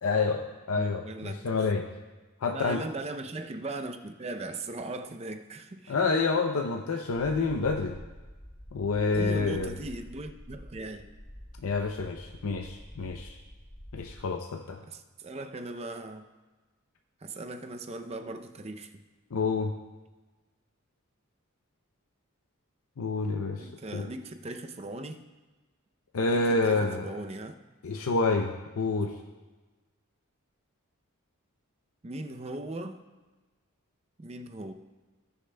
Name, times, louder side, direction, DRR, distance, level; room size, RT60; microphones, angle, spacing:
voice 1, 0.0-1.9 2.4-2.8 5.9-8.0 8.7-9.7 11.6-13.4 13.9-14.8 19.3-19.7 23.0-24.1 26.1-27.1 27.8-29.1, left 3 dB, 75° left, 3 dB, 0.5 m, -28 dB
voice 2, 0.7-1.5 2.5-6.0 9.1-11.1 14.8-16.2 17.2-19.0 23.6-25.2 26.3-27.6 32.0-33.0 34.2-34.7, right 2 dB, 30° right, 6 dB, 0.5 m, -38 dB
sound 1, 7.1-14.2, equal, 10° left, 0.7 m, -47 dB
18.5 x 6.7 x 2.2 m, 1.2 s
head